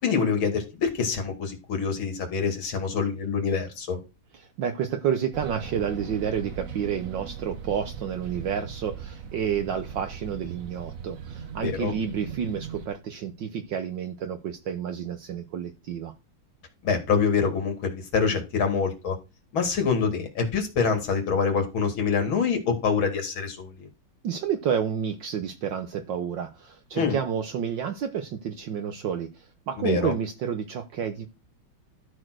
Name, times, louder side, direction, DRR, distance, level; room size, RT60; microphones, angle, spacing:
voice 1, 0.0-4.0 11.6-11.9 16.8-19.2 19.5-23.9 26.9-27.2 29.8-30.1, left 5 dB, 75° left, 3.1 m, -25 dB
voice 2, 4.6-16.1 24.2-31.3, right 8 dB, 65° right, 1.6 m, -30 dB
sound 1, 5.3-12.9, right 7 dB, 45° right, 1.4 m, -39 dB
12.5 x 4.5 x 6.2 m
omnidirectional pair, 2.2 m